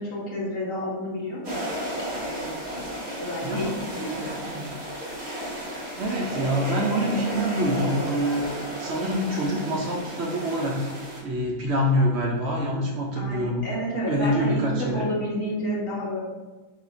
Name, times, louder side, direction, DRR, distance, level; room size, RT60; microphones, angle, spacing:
voice 1, 0.0-1.6 2.1-2.8 3.2-4.4 6.3-6.6 13.1-16.2, equal, 70° left, -5 dB, 1.6 m, -31 dB
sound 1, 1.4-11.2, equal, 30° right, 1.2 m, -33 dB
voice 2, 3.4-3.7 4.2-4.7 6.0-8.5 8.8-10.8 11.2-13.6 14.1-15.1, equal, 60° right, -2 dB, 0.9 m, -26 dB
4.0 x 2.8 x 4.1 m, 1.2 s
omnidirectional pair, 1.4 m